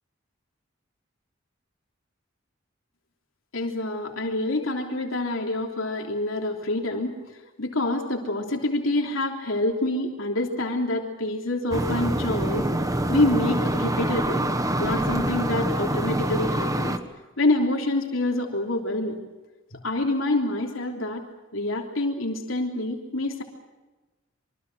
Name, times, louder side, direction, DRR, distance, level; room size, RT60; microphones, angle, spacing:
voice 1, 3.5-7.2 7.6-12.7 13.1-14.4 14.8-17.0 17.4-19.2 19.7-21.2 21.5-23.4, left 2 dB, 90° left, 1 dB, 3.3 m, -26 dB
sound 1, 11.7-17.0, right 1 dB, 20° right, 1.4 m, -25 dB
26.0 x 24.0 x 6.2 m, 1.2 s
head